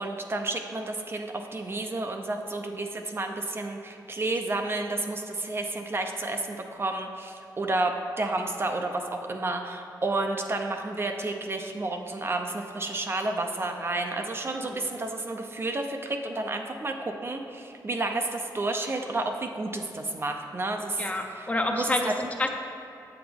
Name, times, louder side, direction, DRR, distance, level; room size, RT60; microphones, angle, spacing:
voice 1, 0.0-22.1, right 2 dB, 30° right, 4 dB, 0.5 m, -31 dB
voice 2, 21.0-22.5, left 2 dB, 20° left, 3 dB, 0.6 m, -28 dB
7.9 x 7.6 x 3.5 m, 2.9 s
wide cardioid pair, 135°, 8 cm